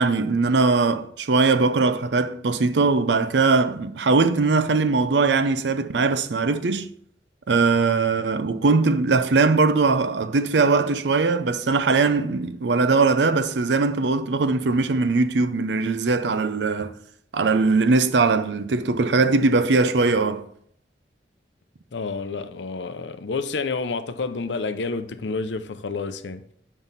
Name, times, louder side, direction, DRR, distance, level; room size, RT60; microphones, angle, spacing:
voice 1, 0.0-6.9 7.5-16.9 17.3-20.5, right 3 dB, 80° right, 0.5 m, -20 dB
voice 2, 21.9-26.5, left 4 dB, 90° left, 0.6 m, -29 dB
7.3 x 5.4 x 4.0 m
head